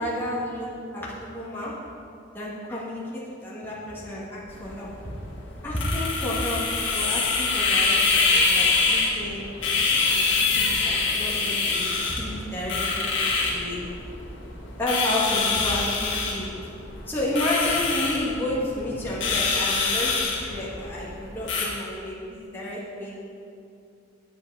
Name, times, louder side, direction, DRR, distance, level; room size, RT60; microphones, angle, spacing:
voice 1, 0.0-1.7 2.3-4.9 5.6-6.6 6.9-9.5 10.0-10.2 10.5-13.2 13.5-13.8 14.8-16.5 17.1-23.2, left 1 dB, 10° left, -7 dB, 1.5 m, -31 dB
sound 1, 4.5-21.7, left 4 dB, 80° left, 1.9 m, -25 dB
8.4 x 7.8 x 4.7 m, 2.5 s
head